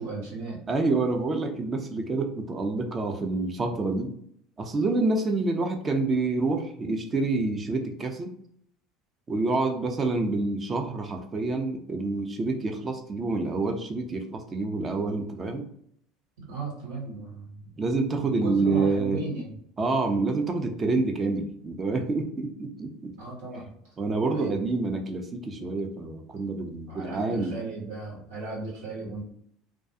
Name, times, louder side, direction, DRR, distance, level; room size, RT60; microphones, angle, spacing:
voice 1, 0.0-0.6 16.5-17.7 18.2-19.5 23.2-23.9 24.3-24.6 25.6-25.8 26.3-26.4 26.9-29.2, right 3 dB, 80° right, -4 dB, 1.2 m, -35 dB
voice 2, 0.7-4.2 4.6-8.3 9.3-15.7 17.8-19.2 19.8-23.1 24.0-27.6, right 3 dB, 30° right, 4 dB, 0.5 m, -27 dB
2.4 x 2.2 x 2.7 m, 0.67 s
hypercardioid pair, 80°, 0 cm